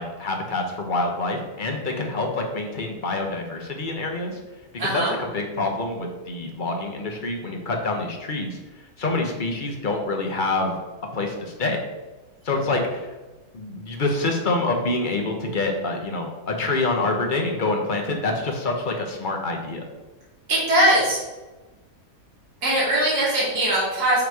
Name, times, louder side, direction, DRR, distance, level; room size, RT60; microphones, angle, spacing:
voice 1, 0.0-4.4 4.7-8.6 9.0-10.8 11.1-11.8 12.4-13.1 13.5-19.8, left 2 dB, 40° left, 2 dB, 0.8 m, -26 dB
voice 2, 4.8-5.1 20.5-21.2 22.6-24.2, right 1 dB, 85° right, -7 dB, 2.5 m, -20 dB
6.8 x 3.2 x 4.7 m, 1.1 s
omnidirectional pair, 1.6 m